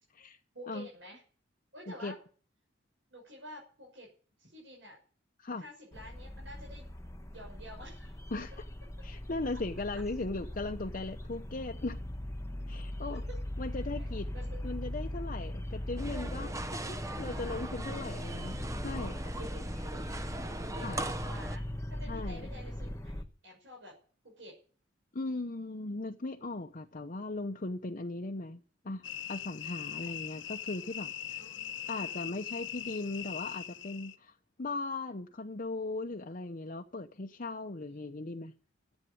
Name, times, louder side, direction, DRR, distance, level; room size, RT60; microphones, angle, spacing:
voice 1, 0.5-1.2 1.7-2.2 3.1-4.1 4.4-5.0 5.6-6.9 7.3-8.2 13.3-13.4 13.9-14.1 14.3-14.6 16.4-16.5 17.3-18.2 19.2-21.6 21.9-23.9 24.2-24.6 29.9-30.1 31.4-32.2 37.9-38.2, equal, 70° right, 6.3 m, -50 dB
sound 1, 5.9-23.2, left 1 dB, 15° left, 1.2 m, -40 dB
voice 2, 8.3-8.6 9.0-12.0 12.7-13.2 13.6-14.3 14.6-18.6 18.8-19.2 20.8-21.0 22.1-22.5 25.1-31.4 31.9-38.5, left 2 dB, 45° left, 0.9 m, -38 dB
sound 2, 16.0-21.6, right 2 dB, 15° right, 0.7 m, -39 dB
sound 3, 29.0-34.1, left 10 dB, 80° left, 1.0 m, -41 dB
14.0 x 8.3 x 9.5 m
head